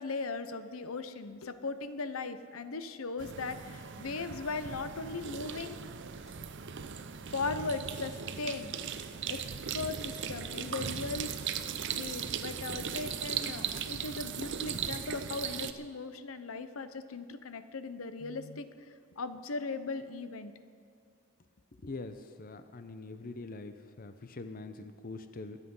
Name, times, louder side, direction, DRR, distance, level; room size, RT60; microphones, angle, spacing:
voice 1, 0.0-5.8 7.3-8.7 9.3-9.4 9.7-11.3 11.9-18.7 19.2-20.5, left 3 dB, 80° left, 11 dB, 0.8 m, -38 dB
sound 1, 3.2-15.7, right 7 dB, 55° right, 0.6 m, -38 dB
voice 2, 21.8-25.6, left 3 dB, 40° left, 9 dB, 0.6 m, -43 dB
22.5 x 8.3 x 5.5 m, 2.4 s
head